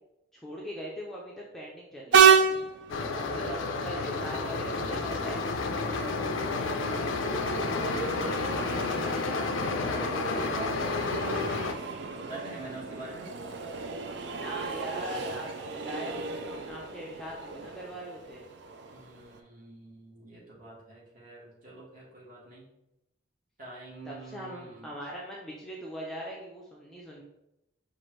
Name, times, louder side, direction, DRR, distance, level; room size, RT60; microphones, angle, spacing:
voice 1, 0.3-2.6 3.2-5.5 14.3-18.4 24.1-27.2, equal, ahead, -4 dB, 0.5 m, -41 dB
Train, 2.1-19.4, right 6 dB, 65° right, 0.4 m, -31 dB
sound 1, 2.9-11.7, left 3 dB, 90° left, 0.4 m, -31 dB
voice 2, 3.3-5.1 6.1-8.2 8.8-10.8 12.1-13.3 18.9-22.7 23.6-24.9, right 2 dB, 45° right, -6 dB, 1.5 m, -46 dB
5.7 x 2.5 x 3.1 m, 0.88 s
head